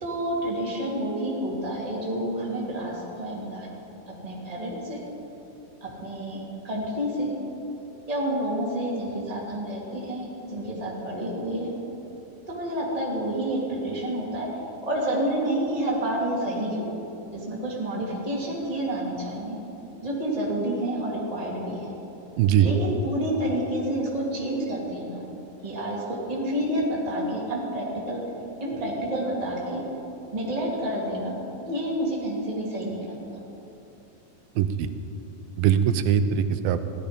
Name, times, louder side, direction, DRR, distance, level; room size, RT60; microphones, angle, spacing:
voice 1, 0.0-3.7 4.2-5.0 5.8-7.3 8.1-11.7 12.5-14.5 14.8-16.9 17.3-19.6 20.0-21.9 22.6-25.2 25.6-28.2 28.6-29.8 30.3-31.3 31.7-33.4, right 1 dB, 10° right, -5 dB, 2.2 m, -29 dB
voice 2, 22.4-22.7 34.6-34.9 35.6-36.8, right 9 dB, 90° right, 10 dB, 2.5 m, -21 dB
16.5 x 12.0 x 5.2 m, 2.9 s
omnidirectional pair, 4.0 m